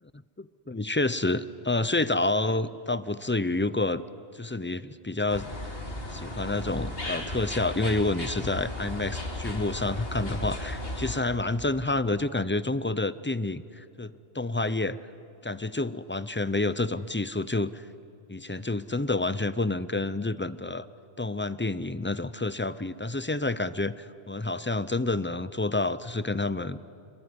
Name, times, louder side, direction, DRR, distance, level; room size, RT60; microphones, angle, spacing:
voice 1, 0.4-4.0 4.3-5.5 6.1-15.0 15.4-17.9 18.3-20.9 21.2-26.8, left 2 dB, 15° left, 15 dB, 0.4 m, -29 dB
sound 1, 5.3-11.2, left 1 dB, 65° left, 3.2 m, -35 dB
26.5 x 22.5 x 9.7 m, 2.6 s
omnidirectional pair, 1.1 m